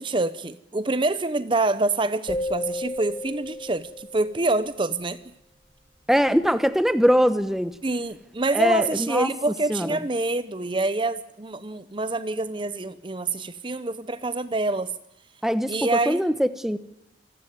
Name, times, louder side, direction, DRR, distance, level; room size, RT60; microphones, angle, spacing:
voice 1, 0.0-5.2 7.8-14.9 15.7-16.2, right 2 dB, 30° right, 14 dB, 0.7 m, -26 dB
sound 1, 2.3-4.5, left 1 dB, 20° left, 2.8 m, -32 dB
voice 2, 6.1-7.7 8.5-9.3 9.7-9.9 15.4-15.7 16.1-16.8, equal, ahead, 12 dB, 0.9 m, -21 dB
27.5 x 12.5 x 9.4 m, 0.87 s
head